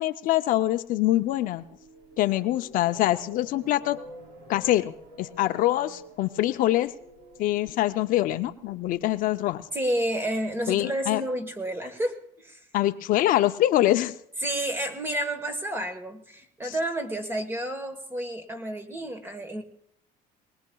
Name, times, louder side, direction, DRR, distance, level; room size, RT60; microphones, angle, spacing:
voice 1, 0.0-1.6 2.2-4.0 4.5-4.9 5.2-6.9 7.4-9.7 10.7-11.2 12.7-14.1 16.6-16.8, left 14 dB, 55° left, 10 dB, 0.5 m, -24 dB
sound 1, 0.8-10.9, equal, 85° right, 2.8 m, -50 dB
voice 2, 9.7-12.6 14.4-19.6, right 1 dB, 15° right, 8 dB, 1.3 m, -30 dB
21.0 x 20.0 x 2.3 m, 0.71 s
cardioid pair, 145°, 17 cm